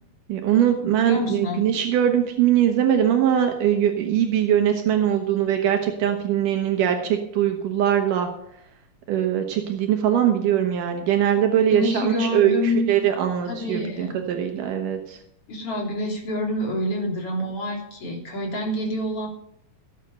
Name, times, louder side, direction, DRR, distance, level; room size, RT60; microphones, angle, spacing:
voice 1, 0.3-8.3 9.1-15.2, right 10 dB, 80° right, 4 dB, 2.7 m, -21 dB
voice 2, 1.1-1.6 11.7-13.0 13.5-14.2 15.5-19.3, left 1 dB, 45° left, 0 dB, 4.0 m, -27 dB
17.0 x 8.0 x 5.4 m, 0.74 s
omnidirectional pair, 3.8 m